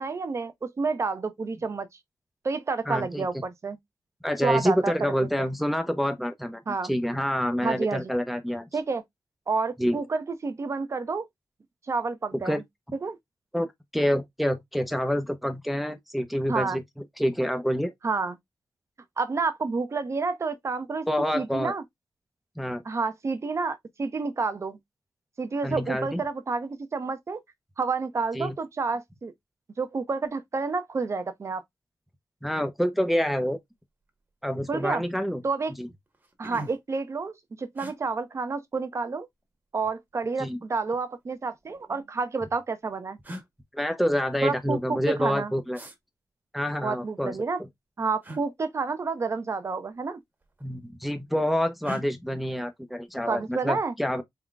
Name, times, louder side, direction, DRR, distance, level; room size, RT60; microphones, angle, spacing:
voice 1, 0.0-1.9 2.4-3.8 4.4-4.9 6.7-6.9 7.6-8.0 8.7-9.0 9.5-11.2 11.9-12.6 13.0-13.2 16.5-16.8 18.0-18.3 19.2-21.1 21.3-21.8 22.8-24.8 25.4-27.4 27.8-29.3 29.8-31.6 34.7-35.0 35.4-35.7 36.4-39.3 39.7-43.2 44.4-45.5 46.8-47.6 48.0-50.2 53.3-53.9, right 4 dB, 40° right, 0.7 m, -29 dB
voice 2, 2.9-3.2 4.2-8.7 9.8-10.0 12.3-12.6 13.5-13.7 13.9-16.8 17.2-17.9 21.1-21.7 22.6-22.8 25.6-26.2 28.3-28.5 32.4-33.6 34.4-35.4 35.8-35.9 40.4-40.6 43.7-45.8 46.5-47.7 50.6-54.2, equal, ahead, 0.6 m, -27 dB
sound 1, 34.0-34.3 34.7-35.1 35.7-35.8 36.1-37.0 37.8-38.0 39.2-39.9 41.0-41.9 42.8-42.9 43.2-43.5 45.7-46.0 48.2-48.4 49.8-50.0 50.3-50.9 51.8-52.1, right 1 dB, 25° right, 1.1 m, -42 dB
4.2 x 3.7 x 2.3 m
wide cardioid pair, 145°, 7 cm